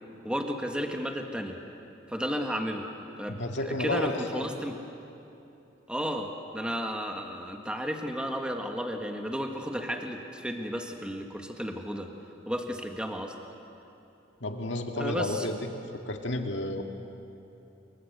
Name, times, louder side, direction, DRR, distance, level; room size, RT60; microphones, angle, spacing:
voice 1, 0.2-1.6 2.1-2.8 3.2-3.4 3.6-4.8 5.9-12.1 12.5-13.3 15.0-15.5, equal, 5° right, 3 dB, 1.6 m, -33 dB
voice 2, 3.4-4.5 14.4-15.6 16.0-16.8, left 1 dB, 70° left, 4 dB, 2.0 m, -31 dB
28.0 x 23.0 x 8.1 m, 2.9 s
head